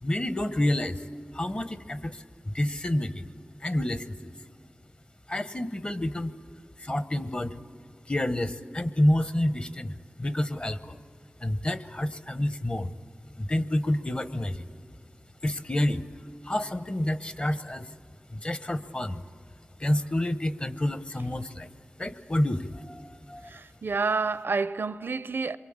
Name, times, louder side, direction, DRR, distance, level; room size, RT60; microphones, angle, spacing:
voice 1, 0.0-1.0 1.3-3.3 3.6-4.2 5.3-6.3 6.8-7.6 8.1-11.0 11.4-12.9 13.4-14.6 15.4-16.0 16.4-17.9 18.3-19.2 19.8-21.7 22.0-23.5, left 1 dB, 30° left, 0.9 m, -28 dB
voice 2, 23.5-25.6, right 4 dB, 75° right, 0.6 m, -29 dB
27.0 x 23.5 x 8.7 m
wide cardioid pair, 85°, 4 cm